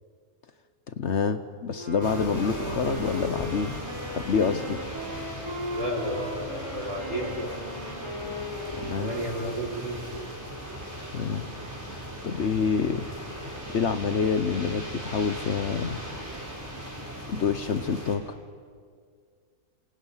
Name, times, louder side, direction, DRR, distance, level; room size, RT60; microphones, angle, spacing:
voice 1, 0.9-3.8 4.1-4.8 8.7-9.2 11.1-11.5 11.9-12.0 12.2-13.1 13.7-16.0 17.3-18.3, left 6 dB, 55° left, 10 dB, 1.1 m, -27 dB
Wind instrument woodwind instrument, 1.7-10.1, equal, 75° right, 6.8 m, -37 dB
sound 1, 2.0-18.2, equal, 10° right, 4.6 m, -38 dB
voice 2, 5.7-7.5 9.0-10.0, equal, 55° right, -1 dB, 4.7 m, -32 dB
27.0 x 27.0 x 5.7 m, 2.1 s
omnidirectional pair, 1.5 m